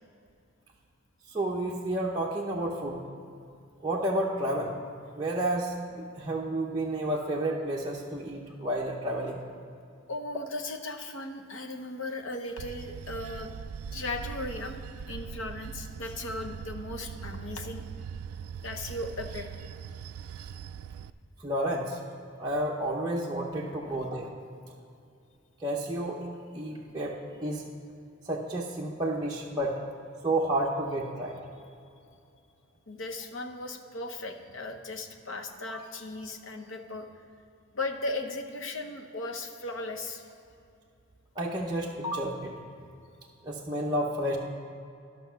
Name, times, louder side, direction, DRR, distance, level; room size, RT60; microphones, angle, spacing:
voice 1, 1.3-3.0 3.8-4.8 5.1-9.4 21.4-22.0 22.4-24.3 25.6-26.3 26.5-27.7 28.3-29.8 30.2-31.4 35.7-35.8 41.4-42.5 43.4-44.4, right 1 dB, 20° right, -4 dB, 0.6 m, -31 dB
voice 2, 10.1-13.5 13.9-14.8 15.1-17.8 18.6-19.5 32.9-37.1 37.7-40.3, left 2 dB, 60° left, 5 dB, 0.8 m, -37 dB
Bell / Train, 12.6-21.1, right 7 dB, 80° right, 0.3 m, -41 dB
12.0 x 6.2 x 5.6 m, 2.5 s
head